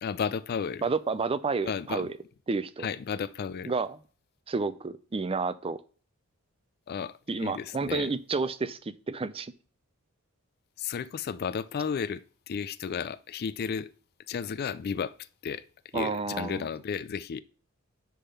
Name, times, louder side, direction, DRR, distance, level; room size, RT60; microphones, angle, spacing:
voice 1, 0.0-0.8 1.6-2.1 2.8-3.7 6.9-8.1 10.8-13.9 14.3-15.6 15.9-17.4, left 6 dB, 45° left, 0.3 m, -33 dB
voice 2, 0.8-2.1 2.5-2.9 3.7-4.0 4.5-5.8 7.3-9.5 15.9-16.7, right 4 dB, 25° right, 0.5 m, -30 dB
10.0 x 3.6 x 5.6 m
head